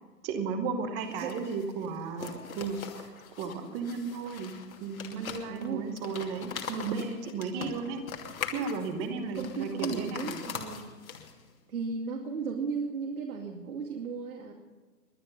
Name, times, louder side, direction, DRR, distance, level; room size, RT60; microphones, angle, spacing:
voice 1, 0.2-3.1 3.4-8.0 8.5-10.4, right 5 dB, 10° right, 8 dB, 1.0 m, -34 dB
sound 1, 1.0-11.5, left 6 dB, 55° left, 2.7 m, -42 dB
voice 2, 5.5-5.9 7.6-7.8 9.1-10.9 11.7-14.5, right 5 dB, 60° right, -1 dB, 2.5 m, -35 dB
22.0 x 10.0 x 5.5 m, 1.3 s
figure-of-eight pair, 145°, 49 cm